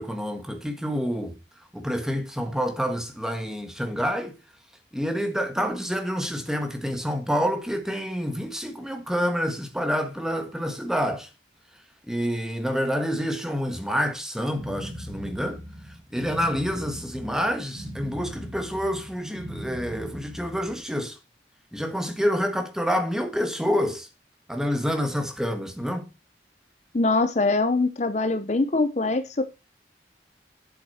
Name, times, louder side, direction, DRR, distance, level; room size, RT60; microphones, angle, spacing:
voice 1, 0.0-1.4 1.7-4.3 4.9-11.3 12.1-15.6 16.1-21.2 21.7-24.1 24.5-26.1, equal, 5° right, 1.4 m, -28 dB
sound 1, 14.5-20.8, equal, 75° right, 2.3 m, -39 dB
voice 2, 26.9-29.4, left 3 dB, 40° left, 0.7 m, -23 dB
8.6 x 7.2 x 4.3 m
head